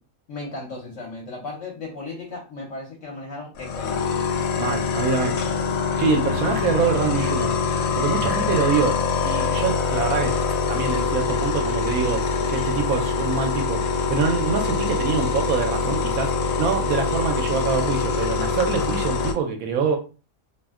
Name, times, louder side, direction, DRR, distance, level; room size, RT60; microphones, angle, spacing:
voice 1, 0.3-4.2, left 3 dB, 65° left, -2 dB, 1.1 m, -36 dB
sound 1, 3.6-19.3, left 5 dB, 85° left, 1.0 m, -24 dB
voice 2, 4.6-5.5 6.0-7.5 7.9-9.0 9.2-10.3 10.7-12.2 12.5-20.0, right 5 dB, 80° right, 3 dB, 1.0 m, -25 dB
2.6 x 2.1 x 3.5 m, 0.34 s
omnidirectional pair, 1.4 m